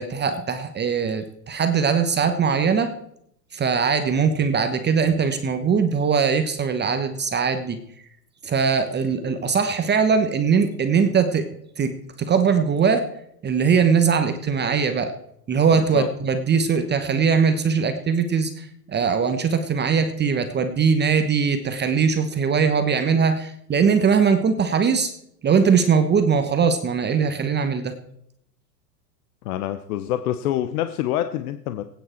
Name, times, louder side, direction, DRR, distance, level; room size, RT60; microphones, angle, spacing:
voice 1, 0.0-2.9 3.5-7.8 8.4-11.5 11.8-13.1 13.4-15.1 15.5-25.1 25.4-27.9, right 6 dB, 20° right, 8 dB, 1.0 m, -21 dB
voice 2, 15.7-16.1 29.4-32.0, left 12 dB, 60° left, 10 dB, 1.0 m, -26 dB
22.0 x 9.3 x 4.4 m, 0.74 s
hypercardioid pair, 110°, 49 cm